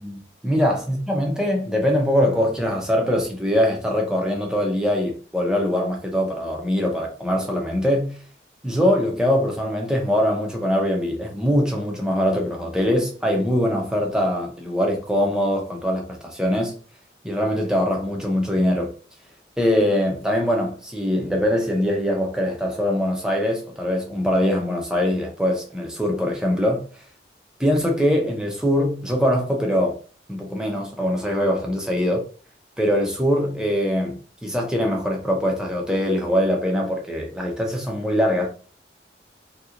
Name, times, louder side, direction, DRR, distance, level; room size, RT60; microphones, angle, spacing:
voice 1, 0.0-8.1 8.6-16.8 17.2-18.9 19.6-26.8 27.6-30.0 30.3-32.2 32.8-38.5, equal, 5° right, 0.7 m, -22 dB
2.9 x 2.4 x 3.7 m
head